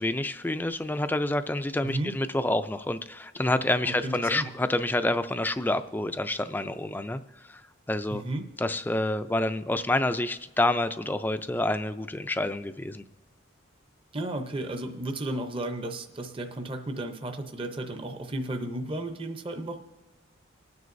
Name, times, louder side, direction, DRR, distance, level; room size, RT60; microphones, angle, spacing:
voice 1, 0.0-7.6 7.9-8.2 8.6-13.0, left 1 dB, 10° left, 10 dB, 0.3 m, -28 dB
voice 2, 1.8-2.1 3.8-4.5 8.1-8.5 14.1-19.8, right 1 dB, 25° right, 6 dB, 0.7 m, -33 dB
26.5 x 9.4 x 2.6 m, 1.2 s
head